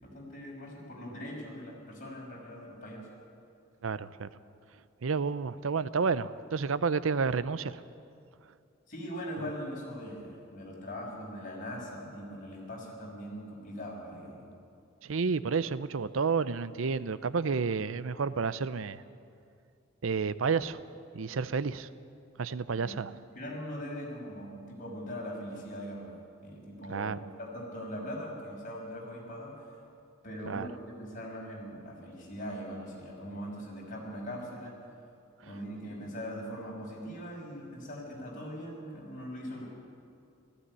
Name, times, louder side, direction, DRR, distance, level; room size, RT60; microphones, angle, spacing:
voice 1, 0.0-3.1 8.9-14.5 22.8-23.0 23.3-26.2 26.4-29.7 30.2-34.7 35.4-39.7, equal, 40° left, -3 dB, 5.9 m, -41 dB
voice 2, 3.8-4.3 5.0-7.8 15.0-19.0 20.0-20.8 21.1-21.9 22.4-23.1 26.9-27.2 30.5-30.7, right 5 dB, 85° right, 15 dB, 0.6 m, -30 dB
17.5 x 15.0 x 9.8 m, 2.5 s
head